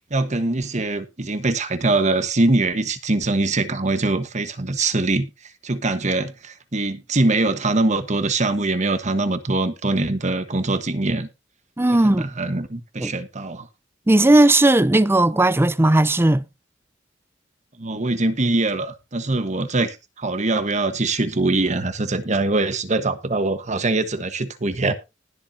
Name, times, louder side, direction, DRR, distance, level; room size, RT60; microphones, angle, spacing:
voice 1, 0.1-5.3 5.6-11.3 11.9-13.7 17.8-24.9, right 2 dB, 40° right, 1.2 m, -23 dB
voice 2, 11.8-12.3 13.0-13.1 14.1-16.4, right 1 dB, 15° right, 0.5 m, -16 dB
19.5 x 7.3 x 2.7 m
head